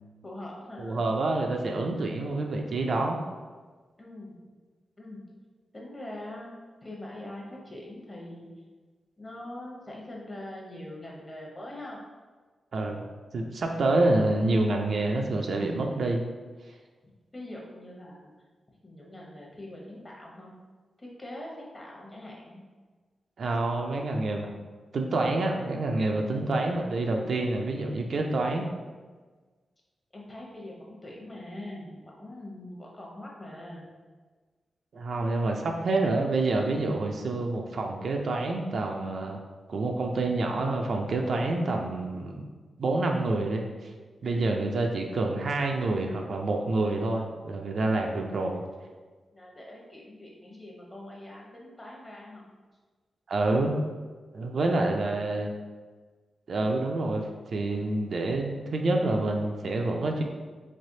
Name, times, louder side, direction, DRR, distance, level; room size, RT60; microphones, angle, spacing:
voice 1, 0.2-1.0 4.0-4.4 5.0-5.2 5.7-6.5 6.8-8.5 9.2-12.0 17.3-18.3 18.8-20.5 21.0-22.6 30.1-33.9 44.2-44.7 49.3-52.4, left 1 dB, 30° left, -3 dB, 0.9 m, -43 dB
voice 2, 0.8-3.2 12.7-13.0 13.3-16.2 23.4-24.5 24.9-28.7 34.9-39.4 39.7-42.5 42.8-43.6 44.2-48.6 53.3-53.8 54.3-55.5 56.5-60.2, right 2 dB, 65° right, 2 dB, 0.4 m, -27 dB
3.3 x 3.2 x 2.7 m, 1.4 s
cardioid pair, 85°, 0 cm